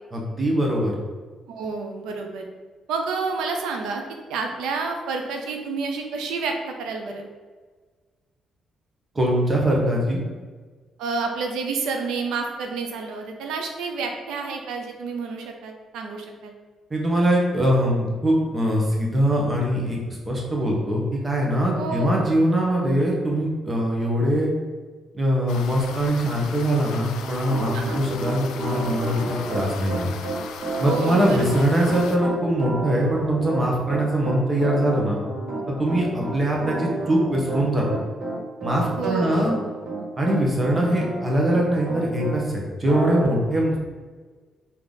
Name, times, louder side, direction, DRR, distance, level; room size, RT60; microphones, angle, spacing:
voice 1, 0.1-0.9 9.1-10.2 16.9-20.0 20.3-24.5 25.1-30.1 30.8-35.2 35.8-37.8 38.6-39.5 40.2-43.8, right 1 dB, 25° right, -2 dB, 1.1 m, -22 dB
voice 2, 1.5-2.5 2.9-4.0 4.3-7.3 11.0-16.5 21.8-22.2 27.7-28.0 30.8-31.6 39.0-39.5, right 4 dB, 90° right, 3 dB, 0.6 m, -29 dB
sound 1, 25.5-32.2, left 7 dB, 90° left, 0.3 m, -38 dB
Piano, 27.2-42.4 42.9-43.2, right 2 dB, 60° right, 1.3 m, -31 dB
3.4 x 2.9 x 3.9 m, 1.4 s
cardioid pair, 90°, 0 cm